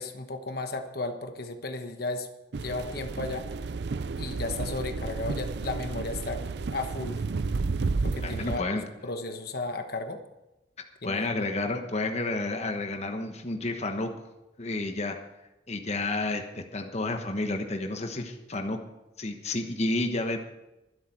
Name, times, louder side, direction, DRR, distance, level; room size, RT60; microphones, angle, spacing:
voice 1, 0.0-2.3 2.6-3.5 4.1-6.4 6.7-7.2 8.0-10.2 11.0-11.5, left 3 dB, 60° left, 7 dB, 1.2 m, -34 dB
sound 1, 2.5-8.6, right 4 dB, 65° right, 0.5 m, -32 dB
voice 2, 8.2-8.8 11.0-14.1 14.6-15.2 15.7-18.8 19.2-20.4, left 2 dB, 35° left, 5 dB, 1.2 m, -30 dB
23.0 x 8.1 x 4.5 m, 0.97 s
head